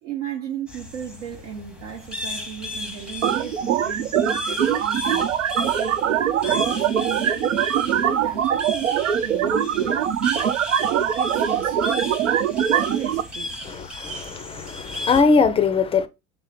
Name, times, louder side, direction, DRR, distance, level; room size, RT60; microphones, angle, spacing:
voice 1, 0.0-5.3 5.8-7.4 7.8-10.0 10.9-12.2 12.9-13.6, right 9 dB, 70° right, 1.0 m, -35 dB
sound 1, 0.7-15.2, left 1 dB, ahead, 0.9 m, -35 dB
sound 2, 3.2-13.2, right 9 dB, 85° right, 0.5 m, -22 dB
voice 2, 13.6-16.1, left 5 dB, 15° left, 0.4 m, -21 dB
5.5 x 2.1 x 4.7 m
hypercardioid pair, 85°, 37 cm